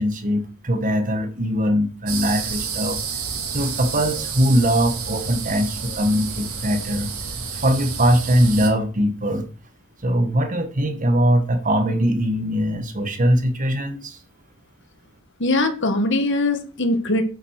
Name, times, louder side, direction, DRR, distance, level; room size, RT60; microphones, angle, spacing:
voice 1, 0.0-3.0 3.5-7.1 7.5-9.5 10.0-14.2, equal, 35° right, 1.5 m, -21 dB
sound 1, 2.1-8.7, right 5 dB, 85° right, 2.6 m, -30 dB
voice 2, 15.4-17.2, left 2 dB, 55° left, 1.8 m, -21 dB
8.1 x 7.5 x 6.5 m
head